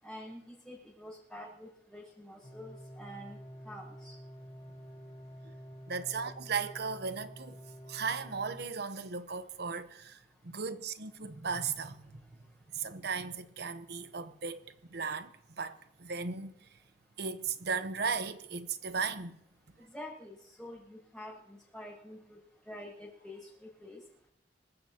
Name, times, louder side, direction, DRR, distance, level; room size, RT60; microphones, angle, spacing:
voice 1, 0.0-3.4 3.6-4.1 19.9-22.4 22.7-24.0, left 1 dB, 5° left, 6.6 m, -47 dB
sound 1, 2.4-8.7, equal, 30° left, 1.7 m, -49 dB
voice 2, 5.9-7.6 7.9-12.2 12.7-16.5 17.2-19.4, right 5 dB, 60° right, 1.0 m, -36 dB
26.0 x 14.5 x 2.9 m
head